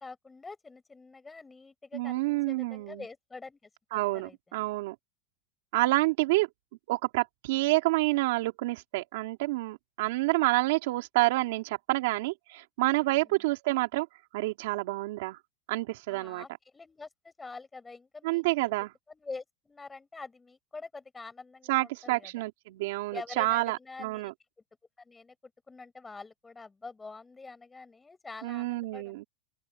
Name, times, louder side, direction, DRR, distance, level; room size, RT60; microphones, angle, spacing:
voice 1, 0.0-4.6 13.1-13.4 16.1-18.7 19.1-22.4 23.1-24.3 25.0-29.3, left 3 dB, 10° left, 5.8 m, -46 dB
voice 2, 1.9-3.0 3.9-4.9 5.7-6.5 6.9-14.1 14.3-15.4 15.7-16.4 18.2-18.9 21.7-24.3 28.4-29.2, right 20 dB, 70° right, 3.0 m, -28 dB
open air
supercardioid pair, 145°, 0 cm